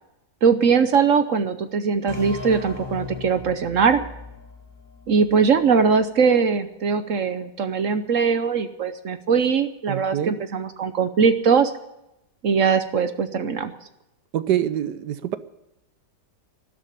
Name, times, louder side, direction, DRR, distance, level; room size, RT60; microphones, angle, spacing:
voice 1, 0.4-4.0 5.1-11.7 12.4-13.8, right 5 dB, 55° right, 11 dB, 1.1 m, -21 dB
sound 1, 2.1-5.6, left 3 dB, 10° right, 6.2 m, -38 dB
voice 2, 9.9-10.3 14.3-15.4, right 11 dB, 80° right, 14 dB, 1.5 m, -25 dB
12.5 x 12.0 x 8.6 m, 0.89 s
omnidirectional pair, 1.8 m